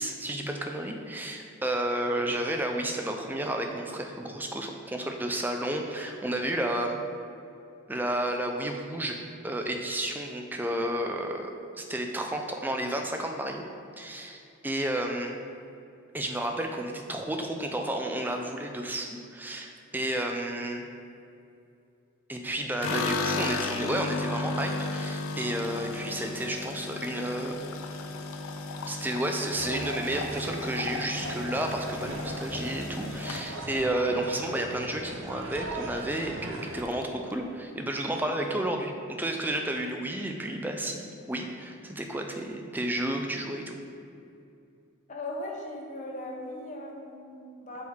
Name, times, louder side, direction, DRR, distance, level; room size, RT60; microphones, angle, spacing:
voice 1, 0.0-7.0 7.9-9.2 9.4-11.5 11.8-13.6 14.0-15.4 16.1-20.8 22.3-27.6 28.9-43.8, right 1 dB, 10° right, 3 dB, 0.3 m, -31 dB
sound 1, 22.8-35.1 35.4-36.0 36.3-36.4 36.7-37.4, left 3 dB, 85° left, 0.4 m, -35 dB
sound 2, 29.5-36.9, right 2 dB, 65° right, 0.5 m, -39 dB
voice 2, 45.1-47.9, left 1 dB, 35° left, -2 dB, 0.8 m, -38 dB
6.1 x 4.6 x 3.5 m, 2.5 s
head